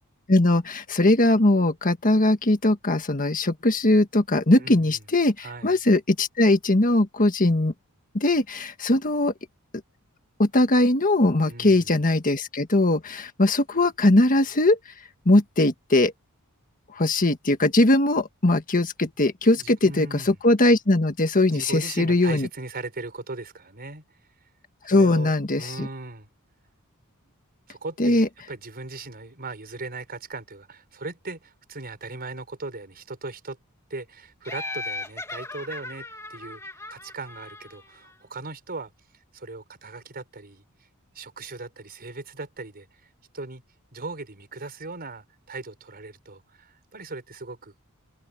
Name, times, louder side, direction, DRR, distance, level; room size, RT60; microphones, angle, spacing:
voice 1, 0.3-7.7 8.1-9.3 10.4-14.8 15.2-16.1 16.9-22.5 24.8-25.9 28.0-28.3, left 2 dB, 40° left, 1.6 m, -20 dB
voice 2, 4.6-5.0 5.4-5.7 11.4-12.1 19.5-20.4 21.5-24.0 24.8-26.3 27.7-33.6 33.9-36.6 36.9-38.9 39.3-40.6 41.1-42.9 43.3-43.6 43.9-47.8, right 3 dB, 45° right, 5.1 m, -38 dB
Laughter, 34.4-38.1, left 2 dB, 15° left, 2.2 m, -37 dB
head